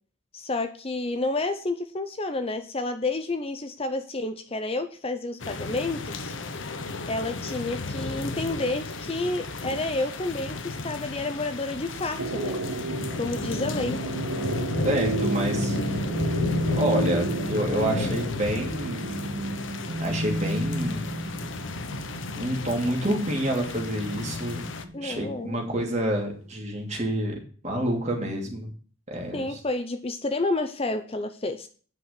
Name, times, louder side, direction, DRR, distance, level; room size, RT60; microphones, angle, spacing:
voice 1, 0.3-6.3 7.1-12.6 13.2-14.0 24.9-25.6 29.3-31.7, left 2 dB, 25° left, 9 dB, 0.7 m, -30 dB
sound 1, 5.4-24.8, left 2 dB, 65° left, 1.0 m, -33 dB
sound 2, 12.2-25.9 26.2-26.3, right 1 dB, 70° right, 1.4 m, -32 dB
voice 2, 14.8-15.8 16.8-19.2 20.0-21.0 22.3-24.6 25.0-27.4 27.6-28.7 29.1-29.6, right 1 dB, 35° right, 1 dB, 2.8 m, -28 dB
9.2 x 5.6 x 6.7 m, 0.42 s
head